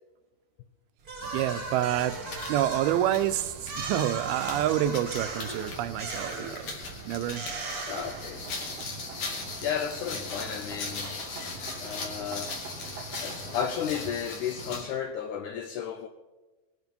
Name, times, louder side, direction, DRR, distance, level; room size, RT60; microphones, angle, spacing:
sound 1, 1.0-8.7, right 4 dB, 40° right, 1.4 m, -38 dB
sound 2, 1.2-14.9, left 3 dB, 60° left, 3.9 m, -39 dB
voice 1, 1.3-2.1 2.5-6.7 7.1-7.4, right 12 dB, 85° right, 2.6 m, -28 dB
voice 2, 7.9-8.4 9.6-11.2 11.8-12.6 13.2-16.1, left 8 dB, 80° left, 1.8 m, -33 dB
sound 3, 7.9-14.2, right 4 dB, 65° right, 1.6 m, -44 dB
21.0 x 11.0 x 5.3 m
omnidirectional pair, 4.3 m